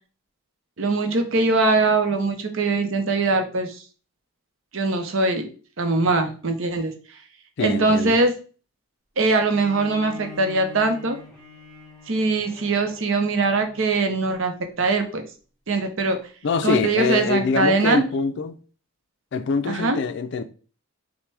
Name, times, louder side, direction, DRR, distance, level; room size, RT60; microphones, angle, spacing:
voice 1, 0.8-3.8 4.7-5.5 5.8-6.9 7.6-8.3 9.2-11.2 12.1-15.2 15.7-16.2 16.6-18.0 19.6-20.0, right 3 dB, 65° right, 0.7 m, -22 dB
voice 2, 7.6-8.2 16.4-18.6 19.3-20.5, left 4 dB, 55° left, 0.4 m, -24 dB
Bowed string instrument, 9.3-14.5, left 3 dB, 5° left, 1.1 m, -43 dB
5.8 x 2.1 x 3.3 m
head